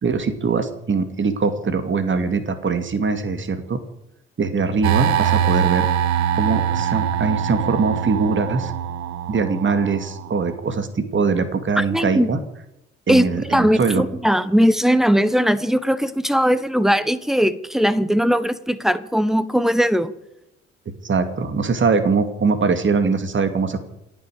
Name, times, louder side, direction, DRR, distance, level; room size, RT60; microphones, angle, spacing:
voice 1, 0.0-3.8 4.4-5.9 6.3-8.7 9.3-12.4 13.1-14.0 20.9-23.9, right 4 dB, 40° right, 9 dB, 2.4 m, -22 dB
sound 1, 4.8-10.5, right 9 dB, 60° right, 1.0 m, -23 dB
voice 2, 11.8-12.3 13.1-20.1, equal, ahead, 15 dB, 1.3 m, -19 dB
28.5 x 9.7 x 5.0 m, 0.85 s
hypercardioid pair, 50°, 31 cm